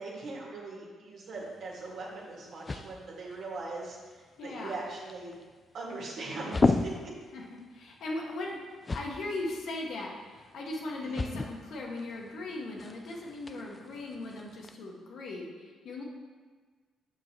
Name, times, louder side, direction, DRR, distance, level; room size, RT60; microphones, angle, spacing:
voice 1, 0.0-5.3 5.7-7.1 11.0-11.5, right 3 dB, 65° right, -4 dB, 2.0 m, -40 dB
sound 1, 1.4-14.8, left 3 dB, 25° left, 0.3 m, -37 dB
voice 2, 4.4-4.8 7.3-8.7 8.9-16.0, left 2 dB, 70° left, -1 dB, 1.2 m, -38 dB
7.0 x 6.3 x 3.0 m, 1.4 s
cardioid pair, 90°, 0 cm